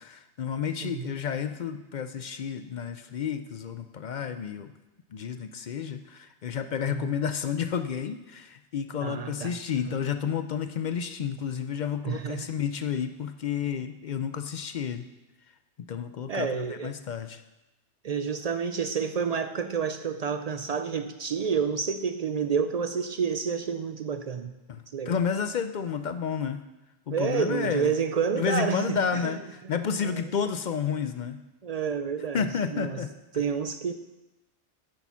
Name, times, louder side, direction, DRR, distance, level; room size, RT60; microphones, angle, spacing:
voice 1, 0.0-4.7 5.1-15.1 15.9-17.4 24.7-26.6 27.1-27.9 28.3-31.4 32.3-33.1, left 7 dB, 55° left, 9 dB, 0.5 m, -31 dB
voice 2, 9.0-10.0 12.0-12.5 16.3-16.9 18.0-24.5 24.9-25.2 27.1-29.4 29.9-30.3 31.6-33.0 33.3-33.9, right 6 dB, 65° right, 9 dB, 0.4 m, -29 dB
8.5 x 8.4 x 5.6 m, 1.0 s
omnidirectional pair, 1.2 m